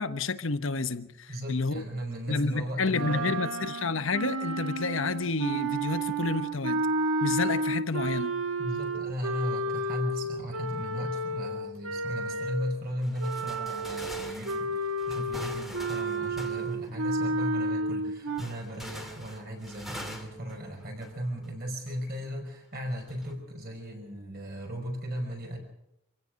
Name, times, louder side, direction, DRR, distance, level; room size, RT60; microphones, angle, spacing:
voice 1, 0.0-1.8 2.3-6.9 7.2-8.3, left 3 dB, 65° left, 1.1 m, -30 dB
voice 2, 1.3-3.4 8.6-25.6, equal, 45° right, 5.4 m, -36 dB
sound 1, 2.9-12.8 13.2-18.4, right 2 dB, 85° right, 1.7 m, -31 dB
sound 2, 13.0-17.1 18.4-21.5 21.9-22.0 23.0-23.3, equal, ahead, 2.3 m, -45 dB
26.5 x 16.0 x 6.5 m
head